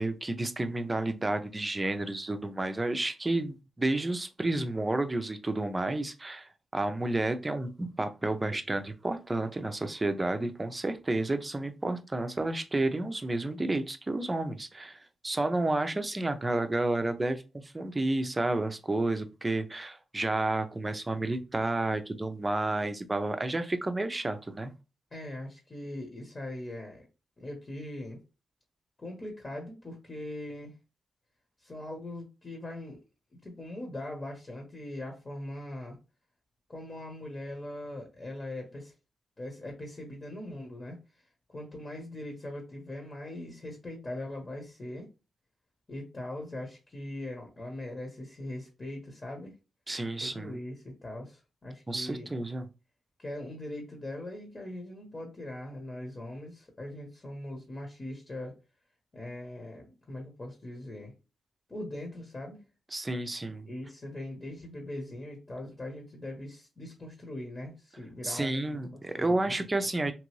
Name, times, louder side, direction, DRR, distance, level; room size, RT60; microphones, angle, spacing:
voice 1, 0.0-24.7 49.9-50.6 51.9-52.6 62.9-63.7 68.2-70.1, right 2 dB, 25° right, 9 dB, 0.5 m, -31 dB
voice 2, 25.1-27.0 27.4-28.2 29.0-30.7 31.6-33.0 33.3-36.0 36.7-38.9 39.4-41.0 41.5-45.1 45.9-49.5 50.2-52.3 53.2-58.5 59.1-61.1 61.7-62.6 63.7-68.8 69.2-69.9, left 1 dB, 35° left, 1 dB, 1.1 m, -41 dB
2.9 x 2.5 x 3.1 m, 0.30 s
cardioid pair, 65°, 0 cm